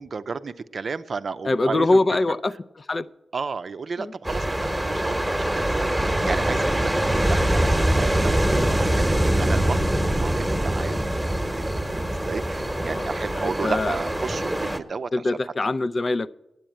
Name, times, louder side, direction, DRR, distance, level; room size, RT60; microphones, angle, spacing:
voice 1, 0.0-2.4 3.3-15.3 15.6-15.7, right 4 dB, 60° right, 11 dB, 0.6 m, -33 dB
voice 2, 1.4-2.5 2.8-3.1 4.0-4.1 12.8-14.0 15.1-16.3, left 2 dB, 45° left, 14 dB, 0.5 m, -24 dB
sound 1, 4.2-14.8, right 1 dB, 10° right, 1.1 m, -23 dB
9.2 x 8.1 x 8.8 m, 0.92 s
supercardioid pair, 40°, 0 cm